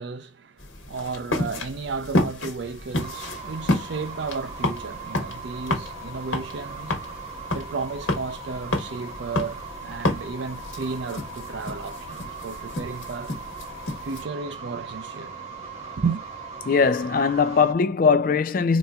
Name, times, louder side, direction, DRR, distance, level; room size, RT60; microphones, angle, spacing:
voice 1, 0.0-7.0 7.5-13.3 14.0-15.4 16.0-16.2, right 4 dB, 65° right, 0.5 m, -33 dB
sound 1, 0.6-14.2, left 1 dB, 90° left, 1.2 m, -31 dB
sound 2, 3.0-17.7, right 4 dB, 35° right, 1.1 m, -39 dB
voice 2, 16.7-18.8, left 5 dB, 45° left, 0.3 m, -20 dB
4.1 x 2.1 x 2.4 m
head